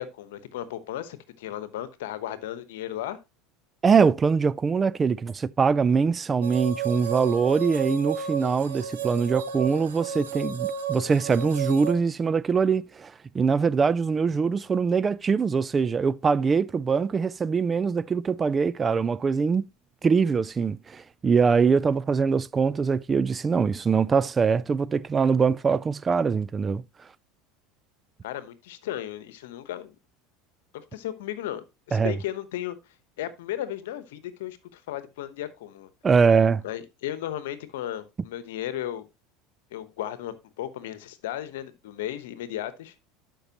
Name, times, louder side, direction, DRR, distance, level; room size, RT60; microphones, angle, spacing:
voice 1, 0.0-3.2 28.2-29.9 30.7-32.8 33.2-35.9 36.6-39.1 39.7-42.9, left 12 dB, 75° left, 1.0 m, -35 dB
voice 2, 3.8-19.7 20.0-26.8 31.9-32.1 36.0-36.6, right 5 dB, 25° right, 0.3 m, -23 dB
sound 1, 6.4-11.9, right 6 dB, 85° right, 1.2 m, -32 dB
12.0 x 5.4 x 2.9 m
hypercardioid pair, 90°, 0 cm